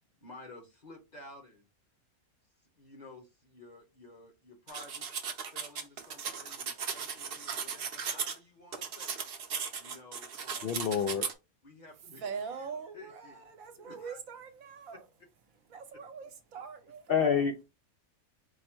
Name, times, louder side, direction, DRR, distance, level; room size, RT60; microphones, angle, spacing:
voice 1, 0.2-1.7 2.7-5.1 5.5-9.3 9.8-10.9 11.6-12.7 12.9-13.4 13.8-14.2 15.9-16.0, left 2 dB, 35° left, 0.9 m, -52 dB
sound 1, 4.7-8.3 8.7-11.3, right 6 dB, 55° right, 0.7 m, -37 dB
voice 2, 10.6-11.3 17.1-17.6, left 7 dB, 75° left, 0.5 m, -28 dB
voice 3, 12.2-15.1 15.5-17.4, right 6 dB, 75° right, 1.2 m, -43 dB
4.6 x 2.1 x 4.4 m
omnidirectional pair, 1.5 m